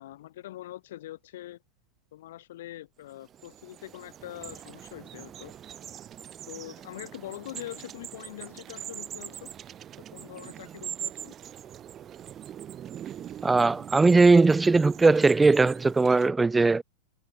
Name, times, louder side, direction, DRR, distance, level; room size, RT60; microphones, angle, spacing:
voice 1, 0.0-1.6 2.1-5.5 6.5-9.5 10.1-11.3, left 14 dB, 70° left, 7.8 m, -43 dB
sound 1, 3.1-16.3, right 10 dB, 25° right, 2.1 m, -42 dB
voice 2, 13.4-16.8, right 3 dB, 10° right, 0.6 m, -19 dB
supercardioid pair, 145°, 0 cm